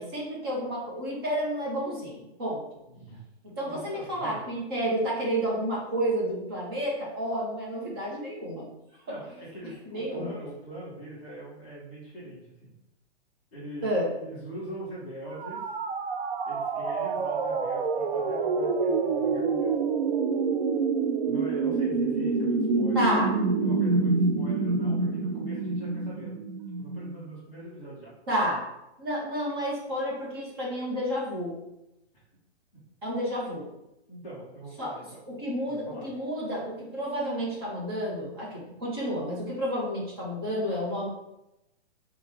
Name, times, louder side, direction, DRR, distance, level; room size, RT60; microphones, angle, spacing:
voice 1, 0.0-2.6 3.4-8.7 9.9-10.3 13.8-14.1 22.9-23.3 28.3-28.6 29.0-31.6 33.0-33.7 34.8-34.9 35.3-41.1, equal, 20° right, -4 dB, 0.8 m, -30 dB
voice 2, 2.9-3.2 3.6-4.4 9.1-12.7 13.5-15.7 16.4-19.7 21.2-23.1 23.6-26.4 26.8-28.1 34.1-35.2 35.7-36.1, right 1 dB, 5° left, -19 dB, 0.5 m, -42 dB
sound 1, 15.3-27.1, right 4 dB, 60° right, 0.5 m, -27 dB
3.6 x 2.3 x 4.5 m, 0.90 s
hypercardioid pair, 180°, 33 cm